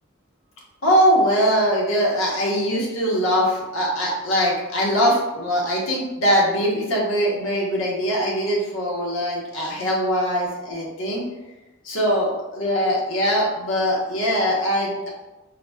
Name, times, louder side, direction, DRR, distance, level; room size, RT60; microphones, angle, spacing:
voice 1, 0.8-11.2 11.8-15.1, equal, 75° left, -4 dB, 0.9 m, -22 dB
4.0 x 2.1 x 2.3 m, 1.1 s
head